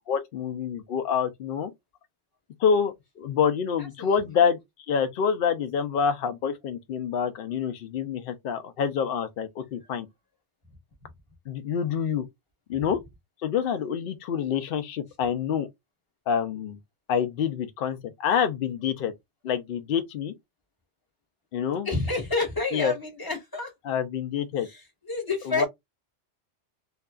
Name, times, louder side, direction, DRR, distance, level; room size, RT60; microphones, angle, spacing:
voice 1, 0.1-1.7 2.6-4.6 4.9-10.1 11.5-12.3 12.7-13.0 13.4-15.7 16.3-16.8 17.1-19.1 19.4-20.3 21.5-21.9 22.7-22.9 23.8-24.7 25.5-25.6, left 7 dB, 60° left, 0.6 m, -27 dB
voice 2, 3.8-4.2 11.0-11.1 21.8-23.7 24.6-24.8 25.1-25.7, left 3 dB, 20° left, 1.0 m, -29 dB
2.7 x 2.4 x 2.2 m
omnidirectional pair, 1.2 m